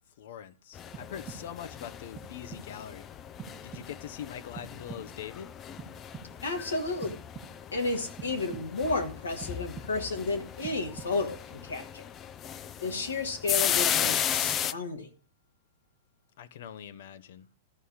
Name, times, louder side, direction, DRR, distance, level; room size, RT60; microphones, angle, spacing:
voice 1, 0.2-3.1 3.6-5.5 16.4-17.5, left 9 dB, 65° left, 0.9 m, -43 dB
sound 1, 0.7-14.7, left 9 dB, 30° left, 0.5 m, -35 dB
sound 2, 0.9-1.7 2.2-2.9 3.4-4.2 4.5-5.4 5.8-6.6 7.0-7.8 8.2-9.0 9.4-10.2 10.6-11.4, right 7 dB, 15° right, 1.2 m, -47 dB
voice 2, 6.4-7.1 7.7-12.0 12.8-15.1, left 3 dB, 85° left, 2.2 m, -32 dB
13.5 x 5.6 x 6.4 m
hypercardioid pair, 105°, 0 cm